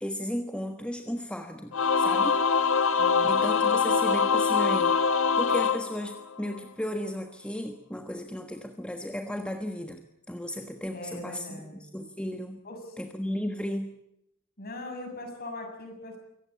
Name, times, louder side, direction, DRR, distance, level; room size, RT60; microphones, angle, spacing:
voice 1, 0.0-2.4 3.2-5.0 5.4-10.0 10.3-11.6 11.9-12.6 13.0-13.9, left 1 dB, 5° left, 4 dB, 1.4 m, -34 dB
Singing / Musical instrument, 1.7-6.6, left 5 dB, 65° left, 1.0 m, -24 dB
voice 2, 3.0-3.5 10.9-11.8 12.6-13.0 14.6-16.2, left 2 dB, 45° left, 4 dB, 7.3 m, -40 dB
24.0 x 17.5 x 8.6 m, 0.77 s
head